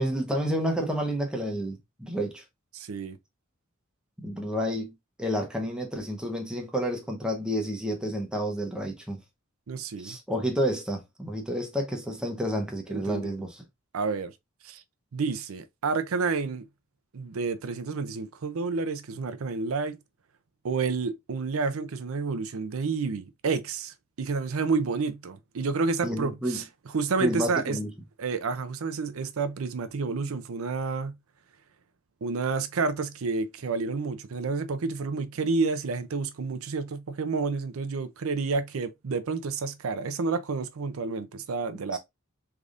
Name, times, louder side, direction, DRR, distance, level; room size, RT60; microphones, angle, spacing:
voice 1, 0.0-2.4 4.2-9.2 10.0-13.6 26.0-26.6 27.2-27.9 41.9-42.0, equal, 5° right, 0.8 m, -30 dB
voice 2, 2.7-3.2 9.7-10.2 12.9-13.3 13.9-14.3 14.6-14.8 15.1-16.6 17.1-20.0 20.6-26.6 26.9-27.8 28.2-31.1 32.2-42.0, right 4 dB, 75° right, 0.5 m, -30 dB
3.8 x 3.4 x 2.5 m
head